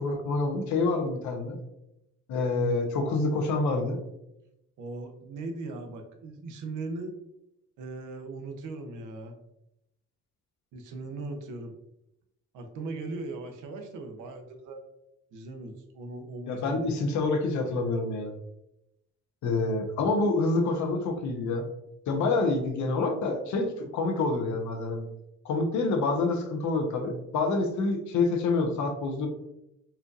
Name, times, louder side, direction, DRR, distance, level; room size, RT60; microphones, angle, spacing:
voice 1, 0.0-1.6 2.3-4.0 16.5-18.3 19.4-21.6 22.1-25.1 25.4-29.3, left 3 dB, 70° left, 4 dB, 0.8 m, -27 dB
voice 2, 4.8-7.1 7.8-9.3 10.7-11.7 12.5-14.8 15.3-16.9, right 3 dB, 90° right, 5 dB, 0.7 m, -39 dB
4.3 x 2.5 x 2.4 m, 0.85 s
cardioid pair, 90°, 30 cm